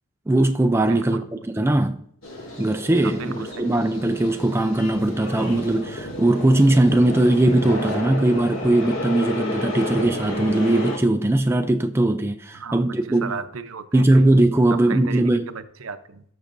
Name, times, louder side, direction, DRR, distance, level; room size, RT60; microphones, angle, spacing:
voice 1, 0.3-1.2 1.5-2.0 2.6-13.4 13.9-15.5, right 1 dB, 10° right, 0.4 m, -20 dB
voice 2, 0.9-1.4 3.0-3.7 12.5-12.9 13.2-14.3 14.7-15.2 15.5-16.2, right 5 dB, 70° right, 0.7 m, -35 dB
sound 1, 2.2-11.0, left 1 dB, 70° left, 2.4 m, -31 dB
15.5 x 6.4 x 2.6 m
head